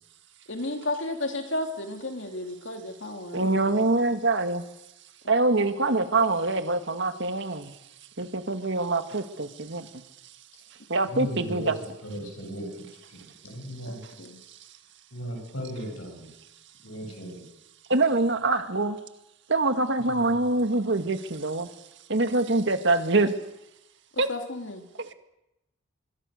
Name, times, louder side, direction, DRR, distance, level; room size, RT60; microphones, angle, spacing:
voice 1, 0.5-3.7 5.2-5.3 13.9-14.4 24.1-24.9, left 2 dB, 60° left, 4 dB, 2.9 m, -33 dB
voice 2, 3.3-4.7 5.3-7.8 8.2-10.0 10.9-11.8 14.0-14.1 14.5-14.6 17.9-19.0 19.5-21.7 22.1-23.4 24.2-24.3 25.0-25.1, right 2 dB, 60° right, 8 dB, 1.8 m, -25 dB
voice 3, 11.1-11.7 12.0-12.7 13.1-14.0 15.1-16.3 16.8-17.4, equal, 75° left, 2 dB, 7.4 m, -36 dB
26.0 x 23.5 x 6.6 m, 0.90 s
head